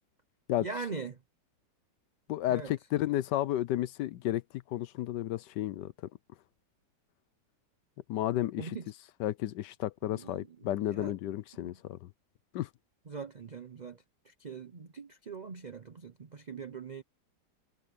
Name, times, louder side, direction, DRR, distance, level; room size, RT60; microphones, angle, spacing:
voice 1, 0.6-1.2 2.5-2.7 8.6-8.9 10.0-11.1 11.6-11.8 13.1-14.0 14.3-17.0, right 5 dB, 70° right, 0.4 m, -42 dB
voice 2, 2.3-4.4 4.7-5.9 8.1-8.8 9.2-12.1 12.5-12.7, left 13 dB, 75° left, 1.2 m, -32 dB
omnidirectional pair, 1.9 m